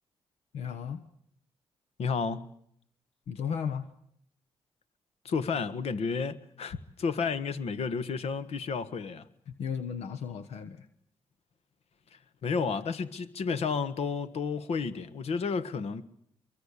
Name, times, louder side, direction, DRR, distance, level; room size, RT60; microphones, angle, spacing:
voice 1, 0.5-1.0 3.3-3.8 9.6-10.9, left 7 dB, 90° left, 1.2 m, -34 dB
voice 2, 2.0-2.5 5.2-9.3 12.4-16.0, left 5 dB, 75° left, 1.6 m, -31 dB
25.0 x 23.5 x 8.5 m
cardioid pair, 75°, 11 cm